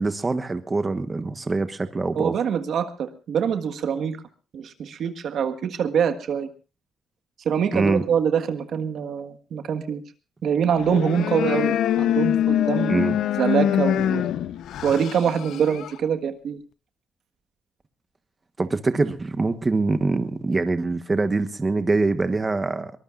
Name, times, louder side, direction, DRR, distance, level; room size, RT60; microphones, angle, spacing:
voice 1, 0.0-2.4 7.7-8.0 12.9-13.2 18.6-22.9, right 3 dB, 25° right, 9 dB, 1.2 m, -24 dB
voice 2, 2.1-4.2 4.5-6.5 7.4-10.0 10.4-13.0 13.4-14.3 14.8-16.6, right 7 dB, 65° right, 8 dB, 1.6 m, -24 dB
sound 1, 10.7-16.0, left 10 dB, 75° left, 0.7 m, -24 dB
23.0 x 19.5 x 2.5 m, 0.34 s
cardioid pair, 90°, 0 cm